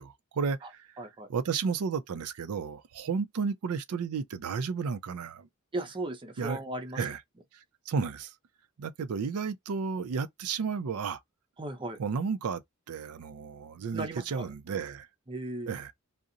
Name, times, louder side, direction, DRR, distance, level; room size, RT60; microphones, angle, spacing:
voice 1, 0.0-0.9 1.3-5.5 6.4-6.6 6.9-7.2 7.5-8.3 8.8-11.2 12.0-12.6 12.9-15.1 15.7-15.9, right 5 dB, 90° right, 0.4 m, -33 dB
voice 2, 1.0-1.3 5.7-7.0 11.6-12.0 13.9-14.5 15.3-15.7, right 1 dB, 25° right, 0.6 m, -36 dB
2.5 x 2.0 x 2.6 m
head